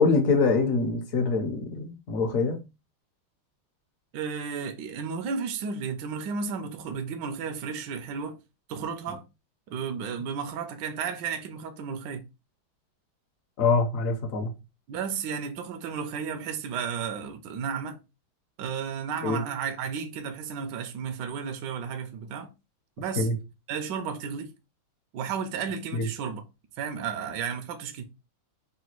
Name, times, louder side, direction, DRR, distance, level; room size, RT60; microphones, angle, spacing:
voice 1, 0.0-2.6 13.6-14.5 19.2-19.4 23.2-23.3 25.9-26.1, left 4 dB, 55° left, 1.0 m, -24 dB
voice 2, 4.1-8.4 8.7-9.2 9.7-12.2 14.9-18.0 18.6-22.5 23.0-23.3 23.7-24.5 25.1-26.4 26.8-28.0, right 6 dB, 70° right, 1.1 m, -33 dB
3.9 x 2.2 x 4.4 m
omnidirectional pair, 2.3 m